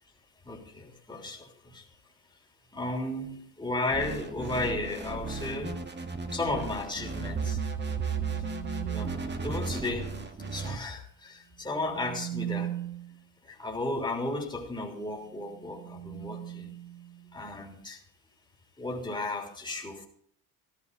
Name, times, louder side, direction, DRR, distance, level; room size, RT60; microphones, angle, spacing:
voice 1, 0.4-1.9 2.7-5.8 6.3-7.6 8.9-9.2 9.4-10.1 10.5-12.8 13.4-16.7 17.3-18.0 18.8-20.1, left 2 dB, 10° left, 0 dB, 3.5 m, -34 dB
wobble bass, 3.9-10.8, right 5 dB, 25° right, 1.9 m, -34 dB
sound 1, 7.6-9.4 11.6-13.3 15.2-17.6, right 12 dB, 60° right, 1.5 m, -40 dB
14.5 x 13.0 x 4.1 m, 0.62 s
supercardioid pair, 100°, 43 cm